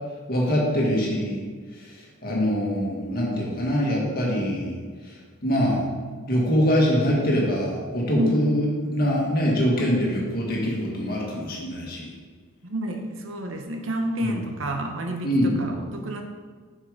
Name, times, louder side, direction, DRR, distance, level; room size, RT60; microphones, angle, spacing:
voice 1, 0.3-1.4 1.7-4.8 5.0-5.2 5.4-5.9 6.3-12.1 14.2-14.3 15.2-15.7, equal, 45° left, -2 dB, 1.9 m, -24 dB
voice 2, 9.8-10.1 12.6-16.2, equal, 65° right, 4 dB, 0.9 m, -29 dB
7.5 x 6.6 x 5.1 m, 1.5 s
head